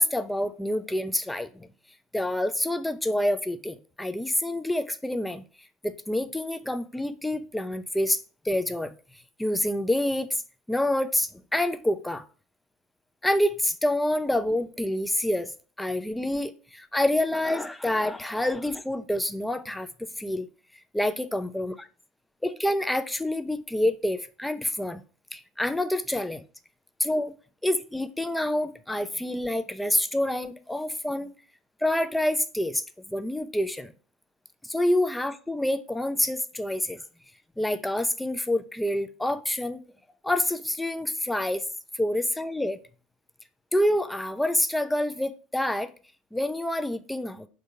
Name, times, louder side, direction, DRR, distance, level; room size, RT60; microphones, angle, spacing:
voice 1, 0.0-1.7 2.1-5.4 5.8-8.9 9.4-10.4 10.7-12.2 13.2-15.5 15.8-20.5 20.9-21.9 22.4-25.0 25.3-26.4 27.0-27.3 27.6-31.3 31.8-33.9 34.6-37.0 37.6-39.8 40.2-41.6 41.9-42.8 43.7-45.9 46.3-47.5, left 1 dB, 5° left, 0.5 m, -27 dB
3.7 x 2.7 x 4.5 m
hypercardioid pair, 75°, 0 cm